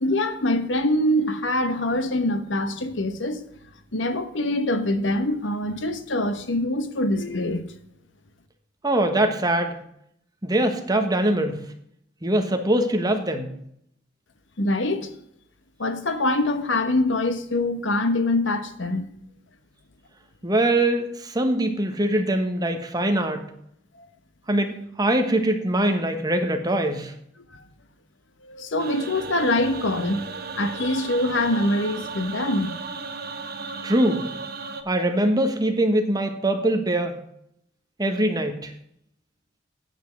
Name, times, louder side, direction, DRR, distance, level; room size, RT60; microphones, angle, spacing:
voice 1, 0.0-3.4 3.9-7.7 14.6-15.1 15.8-19.1 27.5-27.6 28.4-30.3 30.5-32.8, left 1 dB, 85° left, 1.1 m, -24 dB
voice 2, 8.8-9.8 10.4-11.6 12.2-13.5 20.4-23.4 24.5-24.7 25.0-27.1 33.8-34.3 34.9-37.2 38.0-38.7, right 1 dB, 20° right, 1.3 m, -22 dB
sound 1, 28.8-34.8, right 4 dB, 55° right, 1.2 m, -35 dB
9.2 x 7.2 x 6.2 m
head